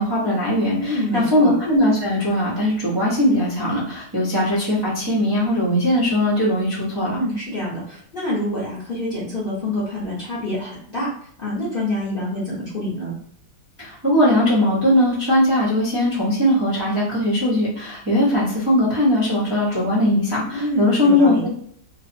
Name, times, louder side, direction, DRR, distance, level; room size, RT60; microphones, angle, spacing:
voice 1, 0.0-7.2 13.8-21.5, left 1 dB, 30° right, -9 dB, 0.4 m, -19 dB
voice 2, 0.8-1.5 7.1-11.1 11.4-13.1 20.5-21.4, left 1 dB, 45° left, -9 dB, 0.7 m, -26 dB
3.1 x 2.0 x 2.6 m, 0.63 s
omnidirectional pair, 1.9 m